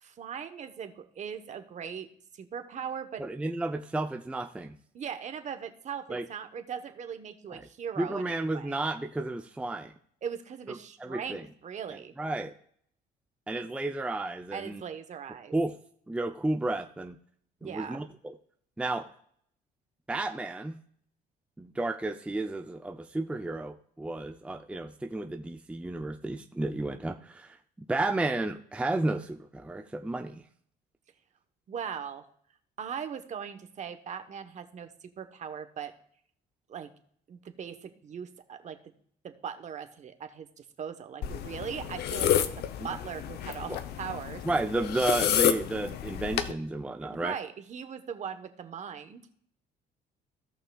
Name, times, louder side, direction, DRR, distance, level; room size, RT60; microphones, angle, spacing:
voice 1, 0.0-2.1 2.4-3.2 4.9-8.7 10.2-12.1 14.5-15.5 17.6-18.0 31.7-32.2 32.8-34.9 35.2-35.9 36.7-36.9 37.3-38.8 39.2-42.4 42.8-44.4 47.0-49.3, right 7 dB, 45° right, 9 dB, 1.1 m, -39 dB
voice 2, 3.2-4.8 6.1-6.3 7.5-7.7 8.0-9.9 10.7-11.5 12.2-12.5 13.5-14.8 15.5-15.7 16.1-17.1 17.6-18.3 18.8-19.1 20.1-20.8 21.6-30.4 43.7-43.8 44.4-47.4, right 2 dB, 5° right, 5 dB, 0.5 m, -32 dB
sound 1, 41.2-46.5, left 10 dB, 70° left, 0.7 m, -30 dB
17.0 x 5.7 x 2.4 m, 0.63 s
cardioid pair, 110°, 17 cm